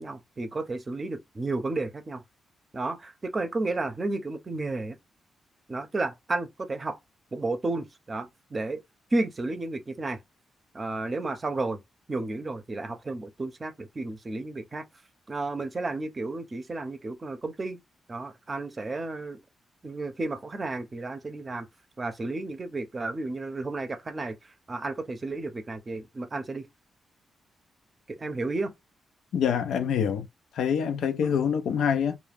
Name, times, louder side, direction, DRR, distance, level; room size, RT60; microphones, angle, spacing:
voice 1, 0.0-2.2 2.7-5.0 5.7-7.0 7.3-8.8 9.1-10.2 10.7-11.8 12.1-14.9 15.3-17.8 18.1-19.4 19.8-21.7 22.0-26.7 28.1-28.7 31.2-31.3, right 2 dB, 35° right, 0.6 m, -32 dB
voice 2, 29.3-30.3 30.5-32.2, left 7 dB, 85° left, 0.4 m, -25 dB
2.3 x 2.2 x 3.4 m
cardioid pair, 70°, 0 cm